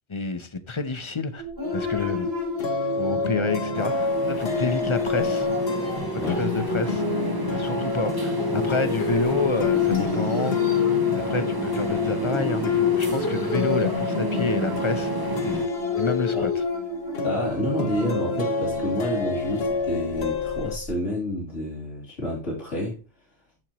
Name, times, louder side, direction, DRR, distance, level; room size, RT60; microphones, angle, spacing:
voice 1, 0.1-1.4 1.7-2.3 3.0-5.5 6.1-7.0 7.5-10.8 11.1-15.6 16.0-16.6, left 3 dB, 30° left, 0.7 m, -29 dB
sound 1, 1.4-20.9, right 5 dB, 65° right, 4.3 m, -33 dB
sound 2, 1.6-20.8, left 7 dB, 65° left, 1.1 m, -27 dB
sound 3, 3.7-15.7, right 3 dB, 25° right, 0.6 m, -33 dB
voice 2, 17.2-23.0, left 1 dB, 85° left, 2.9 m, -29 dB
13.5 x 4.5 x 3.0 m
omnidirectional pair, 1.2 m